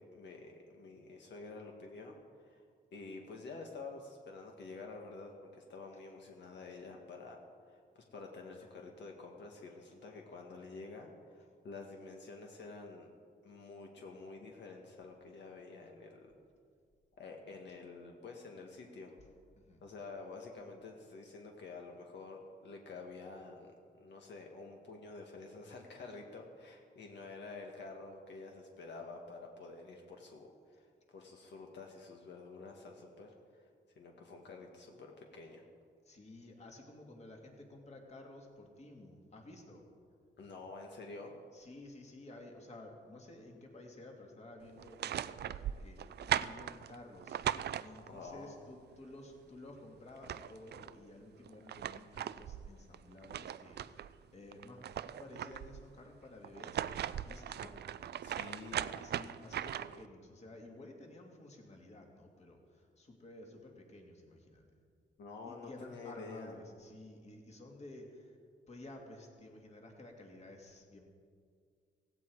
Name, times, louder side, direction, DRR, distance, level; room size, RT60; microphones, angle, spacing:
voice 1, 0.0-2.6 2.9-7.4 7.7-13.1 13.4-16.3 17.2-19.2 19.8-33.7 34.0-35.6 40.4-41.4 48.1-48.6 58.2-58.8 65.2-66.6, left 3 dB, 65° left, 1 dB, 1.8 m, -49 dB
voice 2, 36.0-39.8 41.5-57.8 58.2-64.6 65.4-68.4 68.7-71.0, left 2 dB, 35° left, 1 dB, 2.5 m, -53 dB
sound 1, 44.8-48.3 49.8-49.9 50.1-50.9 51.5-54.1 54.5-55.8 56.4-60.1, right 10 dB, 60° right, 0.5 m, -39 dB
17.0 x 16.5 x 4.8 m, 2.1 s
wide cardioid pair, 140°, 19 cm